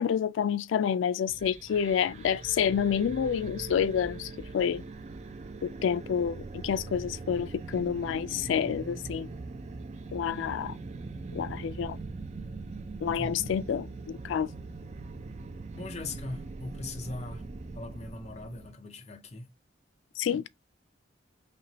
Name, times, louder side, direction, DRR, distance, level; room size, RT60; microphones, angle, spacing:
voice 1, 0.0-4.8 5.6-9.3 10.1-10.7 11.3-12.0 13.0-14.5 20.2-20.4, left 8 dB, 80° left, 0.3 m, -29 dB
sound 1, 1.3-18.7, right 3 dB, 35° right, 0.4 m, -41 dB
voice 2, 13.1-13.4 15.7-17.5 17.8-19.5, left 2 dB, 35° left, 0.6 m, -40 dB
4.3 x 2.9 x 2.8 m
head